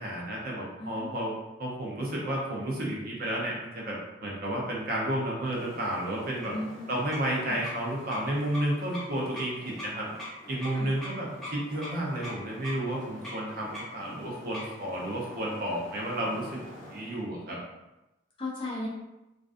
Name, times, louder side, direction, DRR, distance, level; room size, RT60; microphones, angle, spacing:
voice 1, 0.0-6.5 6.9-10.1 10.5-16.6 16.9-17.6, right 1 dB, 50° right, -3 dB, 0.6 m, -32 dB
voice 2, 0.8-1.2 6.5-7.6 10.7-10.9 18.4-18.9, left 2 dB, 25° left, -3 dB, 0.5 m, -37 dB
sound 1, 5.4-17.2, left 1 dB, ahead, 0.7 m, -44 dB
2.4 x 2.2 x 2.4 m, 0.98 s
head